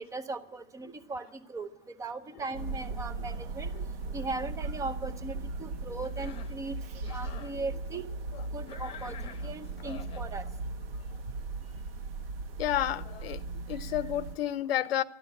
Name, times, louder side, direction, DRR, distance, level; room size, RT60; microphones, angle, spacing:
voice 1, 0.0-1.7 2.0-3.7 4.1-6.8 7.1-8.0 8.5-10.4, right 3 dB, 10° right, 0.7 m, -38 dB
sound 1, 2.5-14.4, right 3 dB, 80° right, 1.4 m, -38 dB
Cough, 6.0-6.6 7.0-7.6 8.7-10.3, left 7 dB, 20° left, 1.0 m, -48 dB
voice 2, 12.6-15.0, left 12 dB, 85° left, 0.9 m, -31 dB
12.5 x 12.0 x 8.8 m
supercardioid pair, 155°, 29 cm